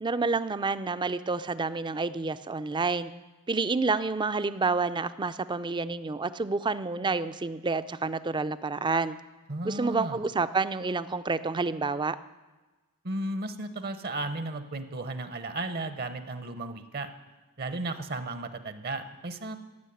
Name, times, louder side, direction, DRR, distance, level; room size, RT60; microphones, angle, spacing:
voice 1, 0.0-3.1 3.5-9.2 9.6-12.2, right 4 dB, 20° right, 14 dB, 0.4 m, -29 dB
voice 2, 9.5-10.2 13.0-17.1 17.6-19.6, right 2 dB, 45° right, 10 dB, 0.8 m, -34 dB
15.0 x 7.2 x 9.9 m, 1.2 s
head